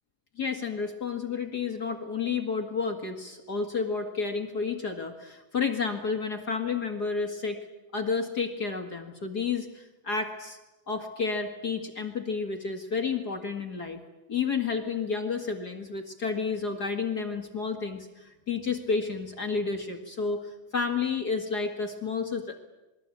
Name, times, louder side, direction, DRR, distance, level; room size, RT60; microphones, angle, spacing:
voice 1, 0.4-7.6 7.9-10.6 10.9-14.0 14.3-22.6, left 5 dB, 35° left, 4 dB, 2.1 m, -31 dB
27.5 x 21.5 x 8.6 m, 1.0 s
omnidirectional pair, 3.7 m